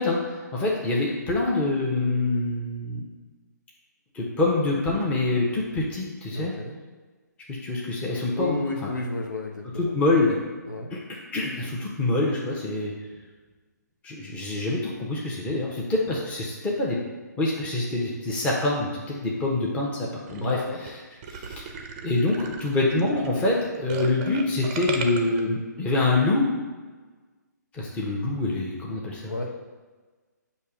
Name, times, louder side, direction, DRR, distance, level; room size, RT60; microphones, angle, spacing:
voice 1, 0.0-3.0 4.1-6.5 7.5-8.9 9.8-10.4 10.9-11.0 11.3-12.9 14.0-17.0 17.4-20.9 21.3-21.7 22.0-26.5 27.7-29.3, left 2 dB, 15° left, -3 dB, 0.9 m, -25 dB
voice 2, 6.3-6.8 8.3-9.9 10.7-10.9 20.4-20.8 29.3-29.6, left 2 dB, 80° left, 1 dB, 1.0 m, -32 dB
sound 1, 20.3-20.5 20.9-21.0 21.2-25.4, right 5 dB, 30° right, 0.6 m, -35 dB
6.7 x 2.9 x 5.0 m, 1.3 s
figure-of-eight pair, 140°, 10 cm